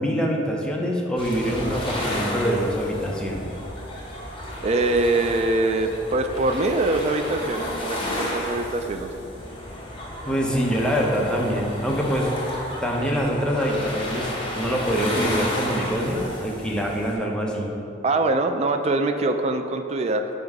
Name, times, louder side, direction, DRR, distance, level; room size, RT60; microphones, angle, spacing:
voice 1, 0.0-3.5 10.2-12.3 12.8-17.7, equal, 5° left, -2 dB, 0.6 m, -25 dB
sound 1, 1.2-17.2, left 1 dB, 30° left, 0.9 m, -32 dB
voice 2, 4.6-9.1 18.0-20.3, right 2 dB, 35° right, 6 dB, 0.3 m, -23 dB
5.3 x 3.8 x 4.6 m, 2.7 s
head